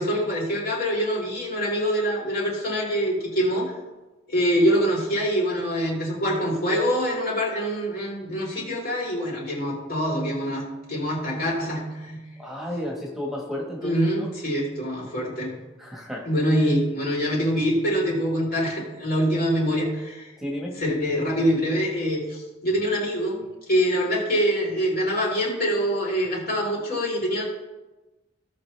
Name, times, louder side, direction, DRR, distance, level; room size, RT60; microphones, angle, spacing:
voice 1, 0.0-3.7 4.3-12.2 13.8-15.6 16.3-20.3 20.8-23.4 23.7-27.4, equal, 55° left, -3 dB, 3.8 m, -25 dB
voice 2, 12.4-14.0 15.8-16.2 20.4-20.7, left 1 dB, ahead, -1 dB, 1.5 m, -32 dB
17.5 x 6.0 x 3.3 m, 1.1 s
head